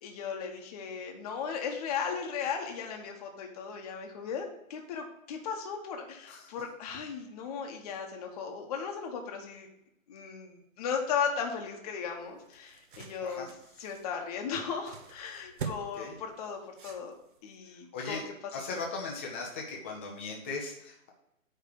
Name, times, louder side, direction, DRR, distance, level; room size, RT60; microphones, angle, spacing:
voice 1, 0.0-9.7 10.1-13.5 13.8-17.1 17.4-18.2, left 6 dB, 30° left, 2 dB, 1.0 m, -36 dB
sound 1, 12.1-17.5, right 6 dB, 40° right, 0.9 m, -45 dB
voice 2, 15.8-16.2 17.9-18.2 18.5-21.1, left 4 dB, 10° left, -1 dB, 0.5 m, -38 dB
9.0 x 3.3 x 6.6 m, 0.82 s
hypercardioid pair, 145°, 41 cm